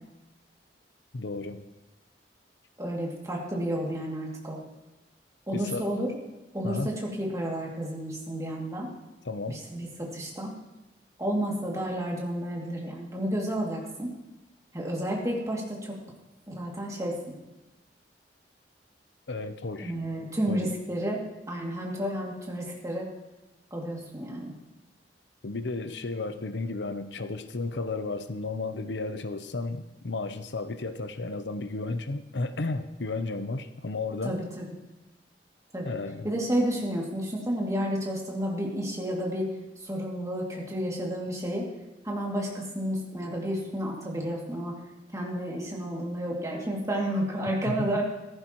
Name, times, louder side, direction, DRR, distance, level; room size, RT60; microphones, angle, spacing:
voice 1, 1.1-1.6 5.5-5.9 6.6-6.9 9.2-9.6 19.3-19.9 20.5-20.7 25.4-34.4 35.8-36.3 47.7-48.0, left 3 dB, 80° left, 10 dB, 0.8 m, -33 dB
voice 2, 2.8-4.6 5.5-6.1 6.5-8.9 9.5-10.5 11.2-14.1 14.7-16.0 16.5-17.3 19.8-23.1 23.7-24.5 34.2-34.7 35.7-35.9 36.2-39.5 39.8-41.7 42.0-44.8 45.1-48.0, equal, 20° right, -2 dB, 2.5 m, -31 dB
15.5 x 14.0 x 3.1 m, 1.1 s
head